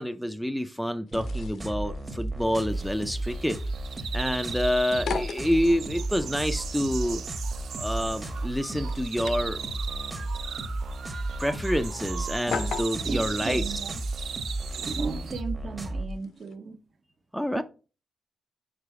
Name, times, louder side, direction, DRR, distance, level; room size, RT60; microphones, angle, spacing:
voice 1, 0.0-3.6 4.1-7.2 7.8-9.6 11.4-13.6 17.3-17.6, equal, ahead, 0.5 m, -28 dB
sound 1, 1.1-16.6, left 6 dB, 70° left, 0.7 m, -41 dB
sound 2, 1.1-16.1, right 1 dB, 25° right, 1.1 m, -34 dB
sound 3, 2.7-15.4, right 7 dB, 70° right, 0.5 m, -38 dB
voice 2, 13.0-14.0 14.6-16.8 17.5-17.6, right 4 dB, 50° right, 1.0 m, -35 dB
5.0 x 4.6 x 4.8 m
cardioid pair, 85°, 0 cm